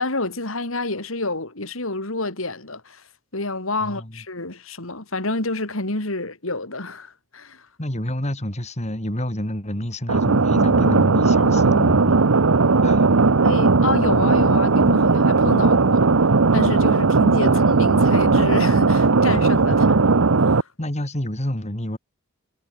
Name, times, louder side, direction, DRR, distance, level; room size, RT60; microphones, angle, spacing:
voice 1, 0.0-3.0 3.3-7.7 13.4-16.1 16.5-19.8 20.4-20.7, left 2 dB, 80° left, 4.3 m, -28 dB
voice 2, 3.8-4.2 7.8-12.2 12.8-13.2 17.5-17.7 19.7-20.1 20.8-22.0, left 1 dB, 35° left, 3.6 m, -29 dB
sound 1, 10.1-20.6, right 4 dB, 85° right, 0.9 m, -17 dB
head